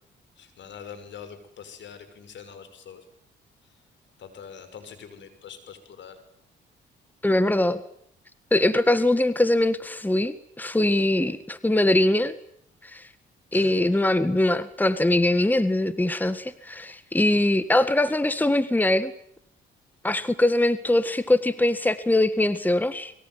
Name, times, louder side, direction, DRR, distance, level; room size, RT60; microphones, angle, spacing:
voice 1, 0.4-3.0 4.2-6.2 13.5-13.7, left 7 dB, 65° left, 11 dB, 6.2 m, -43 dB
voice 2, 7.2-7.8 8.5-12.3 12.8-13.0 13.5-19.1 20.0-23.1, left 1 dB, 10° left, 13 dB, 1.7 m, -22 dB
24.5 x 23.0 x 9.4 m, 0.68 s
cardioid pair, 90°, 20 cm